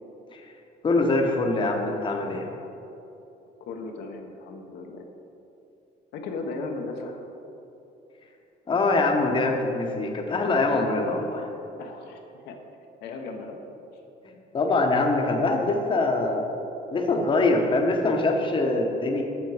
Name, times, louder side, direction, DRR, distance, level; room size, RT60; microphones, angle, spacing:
voice 1, 0.8-2.5 8.7-11.4 14.2-16.6 16.9-19.2, left 2 dB, 30° left, 2 dB, 0.9 m, -24 dB
voice 2, 3.7-5.1 6.1-7.3 11.8-12.6 13.0-13.6 15.2-15.4, left 3 dB, 75° left, 2 dB, 0.9 m, -36 dB
7.1 x 7.0 x 4.9 m, 2.9 s
cardioid pair, 110°, 17 cm